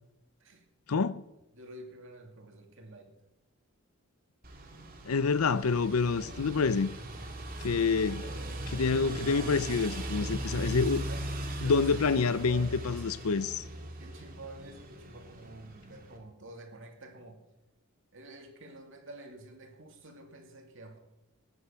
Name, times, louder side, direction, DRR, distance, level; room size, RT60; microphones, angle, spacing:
voice 1, 0.9-1.2 5.0-6.9 7.6-8.2 8.7-11.0 11.6-13.5, left 4 dB, 80° left, 0.6 m, -27 dB
voice 2, 1.5-3.1 6.2-6.6 7.6-8.5 11.1-13.4 14.0-17.4 18.1-21.0, right 1 dB, 60° right, 2.5 m, -49 dB
sound 1, 4.4-16.2, right 1 dB, 45° right, 2.5 m, -39 dB
18.5 x 9.8 x 5.8 m
head